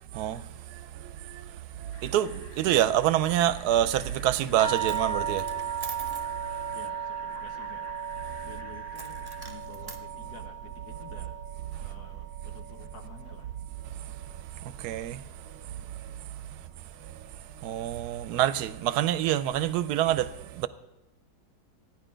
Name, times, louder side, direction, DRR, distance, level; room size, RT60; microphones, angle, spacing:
voice 1, 0.1-0.4 0.7-1.5 1.8-5.7 6.0-6.2 8.3-8.4 14.6-15.2 16.0-16.1 17.6-20.7, right 12 dB, 75° right, 1.1 m, -27 dB
sound 1, 1.9-9.5, left 4 dB, 50° left, 1.4 m, -52 dB
Coin (dropping), 4.2-4.5 4.8-6.3 8.9-10.0, right 3 dB, 35° right, 0.3 m, -45 dB
sound 2, 4.6-13.4 13.7-14.6 15.4-15.5 15.9-16.0, right 7 dB, 5° right, 0.8 m, -36 dB
voice 2, 6.7-7.9 8.4-11.4 11.8-13.6, left 5 dB, 75° left, 1.5 m, -50 dB
14.0 x 10.0 x 5.0 m
omnidirectional pair, 1.7 m